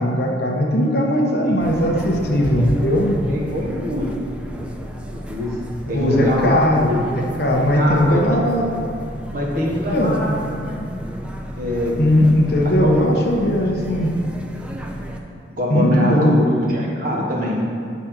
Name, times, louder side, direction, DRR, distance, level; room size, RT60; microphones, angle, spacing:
voice 1, 0.0-3.2 5.9-8.7 9.9-10.2 12.0-14.1 15.7-16.3, equal, 60° left, 0 dB, 1.0 m, -18 dB
sound 1, 1.6-15.2, equal, 5° right, 0.5 m, -32 dB
voice 2, 3.3-4.1 5.3-5.6 5.9-7.0 7.7-8.2 9.3-10.9 11.6-12.0 12.7-12.9 15.5-17.7, left 1 dB, 50° right, -3 dB, 1.3 m, -23 dB
8.6 x 4.2 x 5.9 m, 2.5 s
head